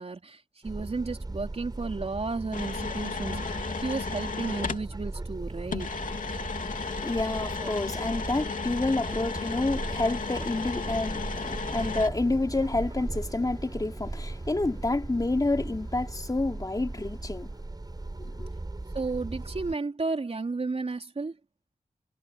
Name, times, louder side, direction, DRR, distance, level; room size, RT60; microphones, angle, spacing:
voice 1, 0.0-6.0 18.9-21.4, right 3 dB, 45° right, 4.1 m, -33 dB
sound 1, 0.6-19.8, right 2 dB, 30° right, 7.3 m, -38 dB
sound 2, 2.5-4.9 5.7-12.1, left 5 dB, 70° left, 3.2 m, -34 dB
voice 2, 7.0-17.5 18.2-18.5, left 2 dB, 25° left, 3.0 m, -29 dB
wide cardioid pair, 90°, 14 cm